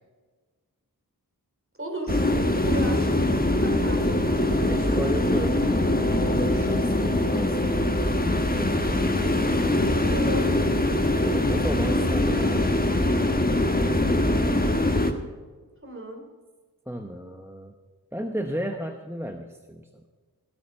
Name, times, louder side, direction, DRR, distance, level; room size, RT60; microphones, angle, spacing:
voice 1, 1.8-2.2 2.6-3.1 3.6-4.2 10.1-10.5 15.8-16.2, right 2 dB, 35° right, 2 dB, 3.1 m, -34 dB
sound 1, 2.1-15.1, left 1 dB, 25° left, 1.3 m, -23 dB
voice 2, 4.7-8.0 8.5-9.1 11.3-12.8 16.9-17.7 18.1-20.0, right 1 dB, 5° right, 4 dB, 0.9 m, -33 dB
15.5 x 8.3 x 5.4 m, 1.4 s
wide cardioid pair, 40°, 38 cm